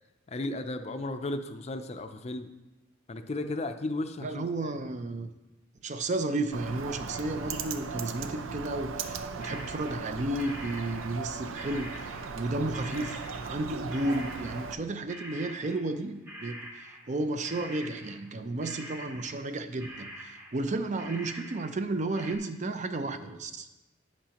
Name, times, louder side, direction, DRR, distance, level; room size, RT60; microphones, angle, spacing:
voice 1, 0.3-2.5 3.1-4.5, left 2 dB, 30° left, 8 dB, 0.5 m, -34 dB
voice 2, 4.2-5.3 5.8-23.7, right 2 dB, 35° right, 9 dB, 0.5 m, -33 dB
Bird, 6.5-14.7, right 5 dB, 85° right, 0.6 m, -38 dB
sound 1, 9.4-10.1 10.4-12.5 12.7-21.9 22.1-22.4, equal, 10° right, 1.1 m, -45 dB
10.5 x 8.5 x 2.9 m, 1.0 s
head